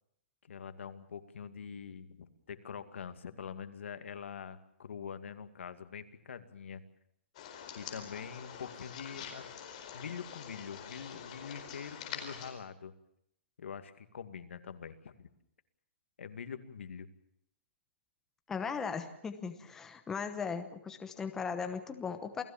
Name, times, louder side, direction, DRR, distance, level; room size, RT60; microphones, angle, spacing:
voice 1, 0.5-6.8 7.8-9.5 9.9-12.9 13.6-15.3 16.2-17.1, left 7 dB, 80° left, 9 dB, 2.3 m, -44 dB
sound 1, 7.3-12.5, left 8 dB, 35° left, 4.5 m, -46 dB
voice 2, 18.5-22.4, left 5 dB, 5° left, 7 dB, 1.0 m, -38 dB
28.5 x 17.5 x 7.3 m, 0.75 s
hypercardioid pair, 175°, 7 cm